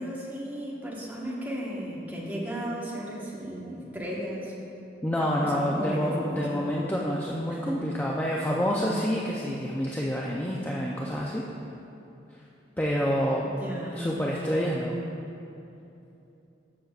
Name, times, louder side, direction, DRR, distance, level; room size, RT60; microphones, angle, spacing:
voice 1, 0.0-4.5 5.2-6.8 7.5-7.9 13.4-14.0, equal, 10° right, -6 dB, 1.2 m, -35 dB
voice 2, 5.0-11.4 12.3-12.4 12.8-13.5 13.9-14.9, equal, 10° left, -3 dB, 0.4 m, -28 dB
13.0 x 6.2 x 2.4 m, 2.8 s
head